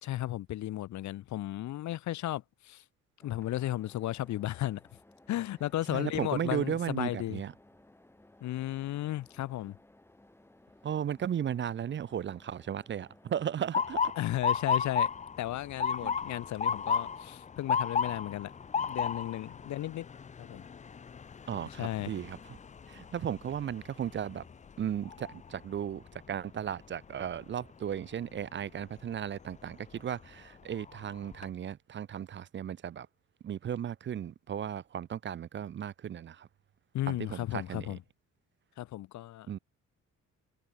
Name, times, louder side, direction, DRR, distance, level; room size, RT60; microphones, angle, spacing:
voice 1, 0.0-2.8 3.2-4.8 5.3-7.4 8.4-9.8 14.2-15.1 15.4-18.5 18.8-20.1 20.4-20.6 21.8-22.1 36.9-38.0 38.8-39.5, left 14 dB, 70° left, 0.8 m, -34 dB
sound 1, 3.2-13.7, left 1 dB, 10° left, 1.3 m, -60 dB
voice 2, 5.9-7.5 10.8-14.0 16.0-16.2 21.5-22.6 22.9-24.4 24.8-33.1 33.4-36.5 37.1-38.0 39.5-39.6, right 9 dB, 40° right, 0.5 m, -35 dB
Motor vehicle (road) / Siren, 13.7-25.6 26.1-26.5 27.3-27.6 29.5-29.7 30.2-30.3 30.8-31.4, left 6 dB, 25° left, 0.5 m, -34 dB
cardioid pair, 90°, 30 cm